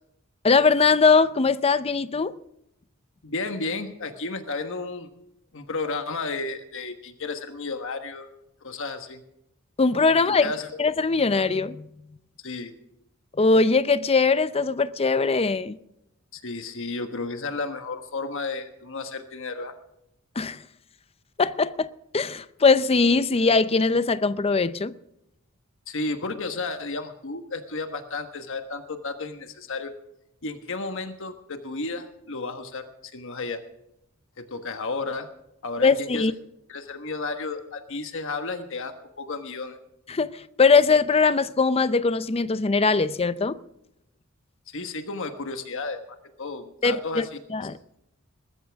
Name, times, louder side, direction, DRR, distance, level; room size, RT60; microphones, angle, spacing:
voice 1, 0.4-2.3 9.8-10.5 10.8-11.9 13.4-15.8 20.4-20.6 21.4-24.9 35.8-36.3 40.1-43.6 46.8-47.2 47.5-47.8, left 4 dB, 30° left, 0.5 m, -21 dB
voice 2, 3.2-5.1 5.5-8.3 8.6-9.2 10.3-10.7 12.4-12.8 16.3-19.7 25.9-29.9 30.4-33.6 34.4-35.3 35.6-36.3 36.7-39.8 44.7-46.0 46.4-47.3, left 3 dB, 65° left, 1.3 m, -32 dB
21.0 x 13.5 x 3.5 m
head